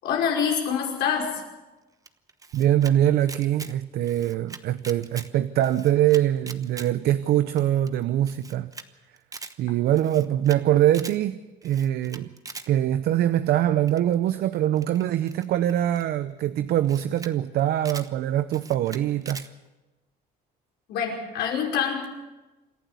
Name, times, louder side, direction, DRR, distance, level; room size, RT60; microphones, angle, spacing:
voice 1, 0.0-1.4 20.9-22.1, left 7 dB, 80° left, 0 dB, 5.3 m, -26 dB
Camera, 2.1-2.9 3.2-3.7 4.0-5.3 5.6-6.9 7.2-7.3 7.6-7.7 7.9-8.0 8.3-8.9 9.2-9.5 9.9-10.6 10.9-11.2 11.6-12.7 13.9-14.1 14.8-16.0 16.6-16.7 16.8-17.3 17.6-18.1 18.5-19.5, right 4 dB, 20° right, 1.1 m, -41 dB
voice 2, 2.5-8.7 9.6-12.3 12.7-19.5, right 12 dB, 70° right, 12 dB, 0.8 m, -23 dB
27.5 x 11.5 x 8.3 m, 1.1 s
cardioid pair, 110°, 17 cm